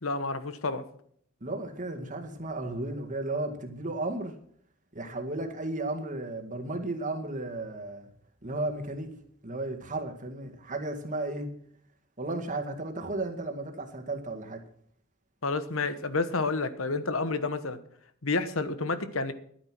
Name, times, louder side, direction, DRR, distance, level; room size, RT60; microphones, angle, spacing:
voice 1, 0.0-0.8 15.4-17.8 18.2-19.3, left 3 dB, 75° left, 12 dB, 1.2 m, -29 dB
voice 2, 1.4-4.3 4.9-8.1 8.4-9.1 9.4-11.5 12.2-14.6, right 2 dB, 40° right, 5 dB, 1.9 m, -34 dB
11.5 x 9.7 x 6.0 m, 0.63 s
head